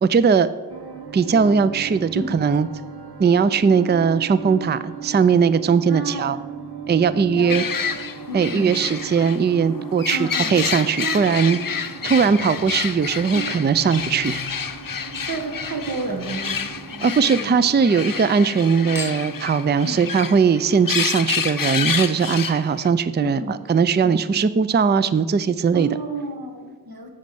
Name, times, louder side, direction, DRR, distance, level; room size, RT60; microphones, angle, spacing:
voice 1, 0.0-0.5 1.1-2.7 3.2-6.4 6.9-7.6 8.3-11.6 12.0-14.4 17.0-25.9, right 6 dB, 30° right, 15 dB, 0.4 m, -19 dB
sound 1, 0.7-19.8, right 7 dB, 85° right, 0.8 m, -38 dB
voice 2, 5.8-6.4 7.3-8.0 8.3-8.8 10.1-10.5 11.0-11.4 13.3-13.6 15.2-17.5 19.8-20.1 23.2-23.5 24.0-24.2 25.7-27.2, right 3 dB, 70° right, 2 dB, 1.6 m, -31 dB
sound 2, 7.5-22.9, left 6 dB, 60° left, 0.7 m, -29 dB
Chink clink / Liquid, 12.1-17.6 17.9-18.6 18.9-19.5 20.2-20.3, left 2 dB, 5° right, 2.0 m, -42 dB
8.7 x 5.3 x 7.6 m, 1.4 s
wide cardioid pair, 40°, 38 cm